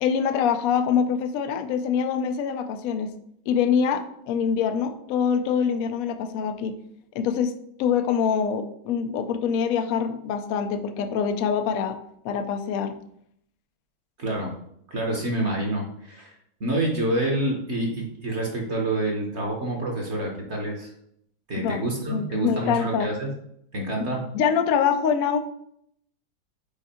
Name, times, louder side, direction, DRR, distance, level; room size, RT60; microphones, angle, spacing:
voice 1, 0.0-3.1 3.5-6.7 7.1-7.5 7.8-12.0 12.2-13.0 21.5-21.8 22.1-23.1 24.0-24.1 24.3-25.4, left 7 dB, 85° left, 8 dB, 0.7 m, -24 dB
voice 2, 14.2-14.5 14.9-16.3 16.6-20.9 21.5-23.3 23.7-24.2, right 1 dB, 45° right, -1 dB, 1.0 m, -27 dB
5.3 x 4.5 x 4.3 m, 0.72 s
omnidirectional pair, 2.2 m